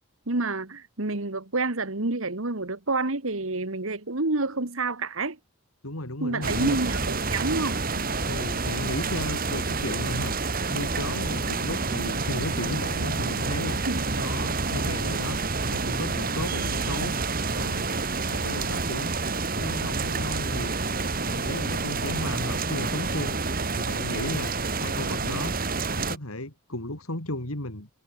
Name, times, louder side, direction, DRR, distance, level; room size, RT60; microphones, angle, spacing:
voice 1, 0.3-5.4 6.2-8.1 13.9-14.0, right 2 dB, 65° right, 1.8 m, -28 dB
voice 2, 5.8-6.8 8.3-10.4 10.7-13.8 14.2-15.4 15.7-17.9 18.3-19.1 19.6-20.7 21.2-23.4 23.8-25.6 26.0-27.9, left 1 dB, 75° left, 3.8 m, -34 dB
sound 1, 6.4-26.2, right 3 dB, 40° right, 2.3 m, -28 dB
head